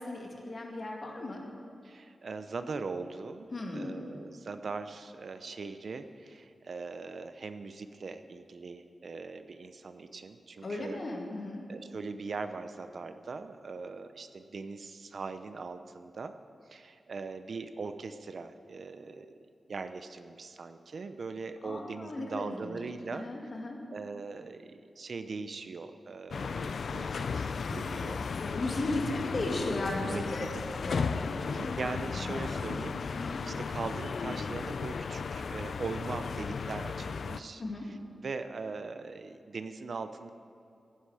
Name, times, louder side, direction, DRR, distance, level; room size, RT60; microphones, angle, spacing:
voice 1, 0.0-1.4 3.5-4.0 10.6-11.6 21.6-22.8 23.1-23.8 28.6-30.4 30.8-31.7 32.2-32.5 33.1-33.4 37.6-37.8, left 2 dB, 45° left, 0 dB, 2.1 m, -36 dB
voice 2, 1.8-11.0 11.7-16.3 16.7-19.3 19.7-23.3 23.9-28.8 29.1-29.2 30.1-30.5 31.5-40.3, right 4 dB, 60° right, 10 dB, 0.6 m, -41 dB
sound 1, 26.3-37.4, left 5 dB, 65° left, 0.4 m, -35 dB
16.5 x 10.0 x 4.9 m, 2.6 s
wide cardioid pair, 130°, 0 cm